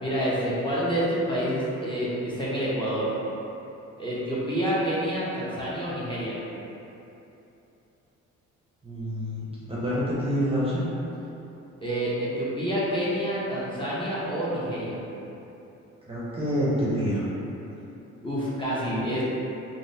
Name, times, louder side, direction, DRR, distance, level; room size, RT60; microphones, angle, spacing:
voice 1, 0.0-3.1 4.0-6.4 11.8-15.0 18.2-19.2, equal, 15° left, -9 dB, 0.8 m, -28 dB
voice 2, 8.8-10.8 16.1-17.2, equal, 20° right, -8 dB, 0.7 m, -27 dB
3.7 x 2.1 x 2.6 m, 2.9 s
cardioid pair, 90°, 30 cm